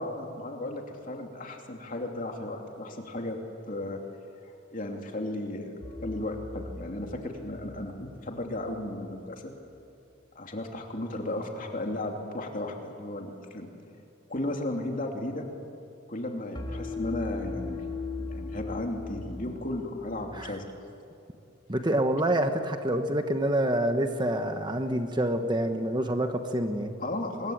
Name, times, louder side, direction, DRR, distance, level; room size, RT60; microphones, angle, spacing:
voice 1, 0.0-3.4 3.7-4.0 4.7-5.7 6.0-9.5 10.3-13.7 14.3-15.5 16.1-17.8 18.2-20.6 27.0-27.5, left 1 dB, 40° left, 2 dB, 2.9 m, -35 dB
sound 1, 5.8-8.9 16.5-20.5, left 4 dB, 20° left, 3.3 m, -39 dB
voice 2, 21.7-26.9, right 1 dB, 20° right, 6 dB, 1.2 m, -27 dB
24.5 x 22.0 x 8.9 m, 2.8 s
head